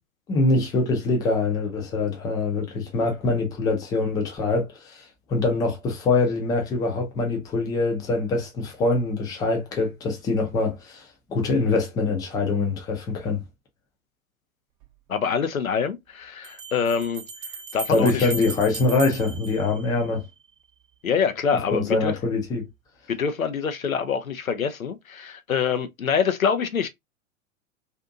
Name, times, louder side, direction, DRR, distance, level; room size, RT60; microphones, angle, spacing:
voice 1, 0.3-11.0 11.3-13.4 17.9-20.2 21.7-22.7, left 3 dB, 10° left, 0.4 m, -24 dB
sound 1, 14.8-14.9 16.4-20.4, right 3 dB, 30° right, 0.7 m, -37 dB
voice 2, 15.1-17.2 17.7-18.3 21.0-22.1 23.1-26.9, left 6 dB, 90° left, 0.5 m, -25 dB
2.6 x 2.5 x 2.4 m
figure-of-eight pair, 100°, 40 cm